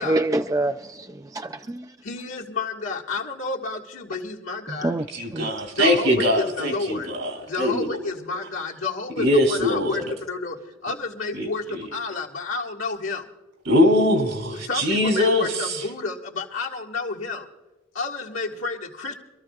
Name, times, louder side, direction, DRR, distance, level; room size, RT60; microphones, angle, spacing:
voice 1, 0.0-2.0 4.7-5.1 5.3-5.5, right 2 dB, 15° right, 0.4 m, -26 dB
voice 2, 2.0-4.9 5.8-7.1 7.4-10.6 10.8-13.3 14.6-17.5 17.9-19.2, left 3 dB, 80° left, 1.8 m, -30 dB
voice 3, 5.1-8.0 9.2-10.0 11.3-11.8 13.6-15.8, left 1 dB, 80° right, 2.9 m, -22 dB
25.5 x 13.5 x 2.4 m
head